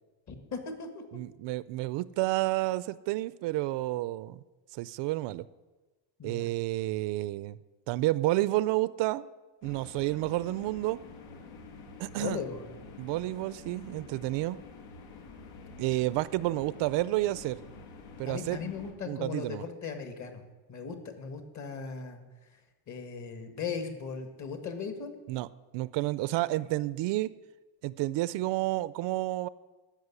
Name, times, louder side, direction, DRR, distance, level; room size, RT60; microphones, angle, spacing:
voice 1, 0.3-1.0 6.2-6.5 12.2-12.6 14.4-14.6 18.2-20.4 20.7-22.2 22.9-25.1, left 5 dB, 35° left, 7 dB, 1.7 m, -38 dB
voice 2, 1.1-4.4 4.7-5.4 6.2-7.6 7.9-9.3 9.6-11.0 12.0-12.4 13.0-14.6 15.8-17.6 18.2-18.6 19.1-19.6 25.3-25.5 25.7-27.3 27.8-29.5, right 17 dB, 65° right, 18 dB, 0.5 m, -30 dB
sound 1, 9.6-18.9, left 4 dB, 80° left, 2.2 m, -48 dB
13.0 x 6.2 x 9.7 m, 1.2 s
cardioid pair, 160°, 47 cm